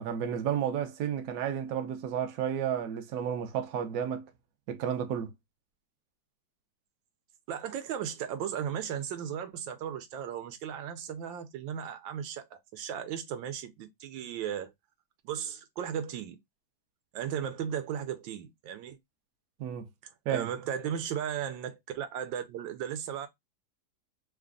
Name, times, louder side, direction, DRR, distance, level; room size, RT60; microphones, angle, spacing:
voice 1, 0.0-4.3 4.7-5.3 19.6-19.9 20.3-20.5, right 9 dB, 65° right, 1.0 m, -32 dB
voice 2, 7.5-14.7 15.2-16.4 17.1-19.0 20.0-23.3, right 9 dB, 90° right, 1.4 m, -36 dB
3.2 x 2.3 x 3.6 m
omnidirectional pair, 2.0 m